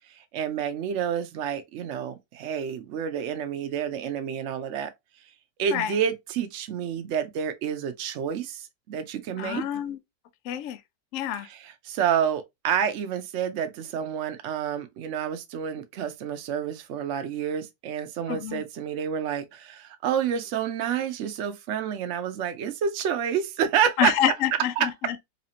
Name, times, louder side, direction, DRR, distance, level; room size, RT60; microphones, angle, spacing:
voice 1, 0.3-4.9 5.6-9.6 11.4-24.1 24.8-24.9, right 8 dB, 65° right, 0.7 m, -29 dB
voice 2, 9.4-10.0 10.5-10.8 11.1-11.5 18.3-18.6 24.0-25.2, left 10 dB, 85° left, 0.7 m, -27 dB
4.1 x 2.7 x 2.7 m
omnidirectional pair, 1.9 m